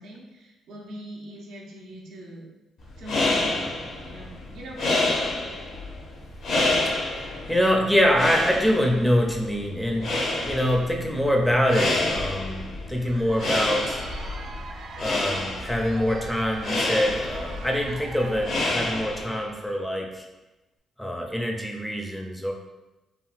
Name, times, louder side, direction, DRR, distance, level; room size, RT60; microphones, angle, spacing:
voice 1, 0.0-2.5 3.0-5.2, equal, 90° right, -2 dB, 0.6 m, -41 dB
sound 1, 2.8-19.5, left 2 dB, 70° left, 0.8 m, -29 dB
voice 2, 6.8-10.1 10.4-14.0 15.0-20.2 21.0-22.5, equal, 5° left, 1 dB, 0.4 m, -25 dB
Crowd, 12.8-19.4, right 3 dB, 60° right, 0.3 m, -42 dB
3.6 x 2.1 x 2.4 m, 1.0 s
cardioid pair, 110°, 0 cm